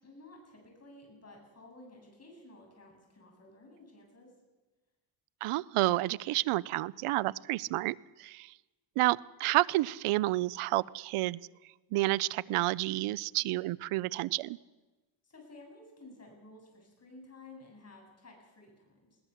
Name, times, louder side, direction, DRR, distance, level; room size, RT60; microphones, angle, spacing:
voice 1, 0.0-4.3 15.2-19.2, left 2 dB, 30° left, 1 dB, 7.8 m, -54 dB
voice 2, 5.4-8.5 9.0-11.4 11.9-14.6, right 18 dB, 90° right, 22 dB, 0.7 m, -30 dB
21.0 x 18.0 x 7.2 m, 1.2 s
cardioid pair, 110°, 49 cm